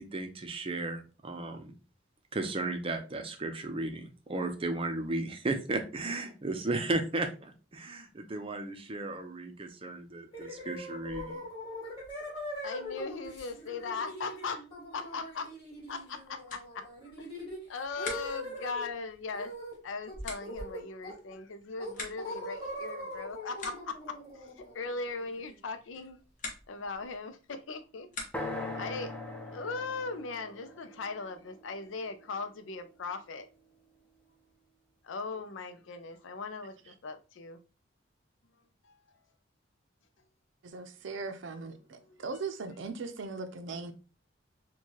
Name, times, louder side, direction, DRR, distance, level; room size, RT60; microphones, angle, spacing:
voice 1, 0.0-1.7 2.3-11.4, right 2 dB, 30° right, 0.5 m, -35 dB
sound 1, 10.3-18.9 19.3-19.8 20.1-21.3 21.8-25.5, left 1 dB, 30° left, 1.8 m, -42 dB
voice 2, 12.6-14.6 14.9-15.5 15.9-16.9 17.2-17.3 17.7-19.5 19.8-26.2 26.7-28.2 28.6-33.5 35.0-37.6 42.1-42.2, left 4 dB, 85° left, 0.5 m, -39 dB
sound 2, 16.1-28.7, left 3 dB, 45° left, 0.9 m, -48 dB
sound 3, 28.3-32.3, left 2 dB, 5° left, 0.6 m, -41 dB
voice 3, 40.6-43.9, right 4 dB, 75° right, 0.5 m, -39 dB
4.5 x 2.3 x 2.8 m
head